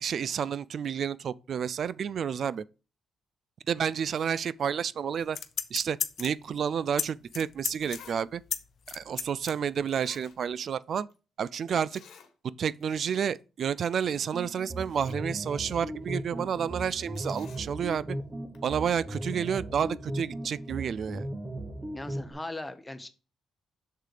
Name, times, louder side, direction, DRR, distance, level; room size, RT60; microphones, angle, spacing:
voice 1, 0.0-2.6 3.7-5.4 5.7-8.4 8.9-11.1 11.4-12.0 12.6-18.2 18.6-21.3, right 7 dB, 55° right, 0.3 m, -30 dB
sound 1, 5.2-6.4 7.0-7.1 7.3-9.5 9.9-10.0, left 7 dB, 55° left, 0.6 m, -33 dB
Zipper (clothing), 7.8-8.2 8.5-8.6 9.5-9.6 9.9-10.8 11.1-11.2 11.9-12.3 12.7-12.8 13.2-13.4 14.3-14.4 14.7-15.2 17.1-17.7 18.5-18.6, left 8 dB, 75° left, 1.3 m, -53 dB
sound 2, 14.3-22.3, right 1 dB, 20° right, 1.2 m, -37 dB
voice 2, 21.9-23.1, left 2 dB, 10° left, 0.9 m, -39 dB
6.6 x 3.8 x 4.9 m
cardioid pair, 90°, 0 cm